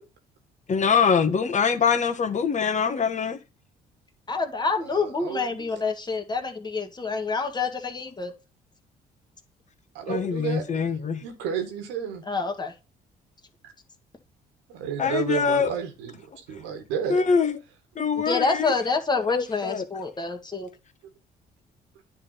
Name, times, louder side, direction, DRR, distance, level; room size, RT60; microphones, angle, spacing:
voice 1, 0.7-3.4 10.1-11.2 15.0-15.7 17.1-17.6 17.9-18.7 19.3-19.9, left 6 dB, 40° left, 1.3 m, -23 dB
voice 2, 4.3-8.3 12.3-12.7 18.3-20.7, left 4 dB, 25° left, 1.7 m, -27 dB
voice 3, 4.8-5.8 9.9-10.7 11.2-12.2 14.7-17.2, right 8 dB, 85° right, 1.6 m, -32 dB
9.5 x 3.6 x 5.6 m
supercardioid pair, 65°, 19 cm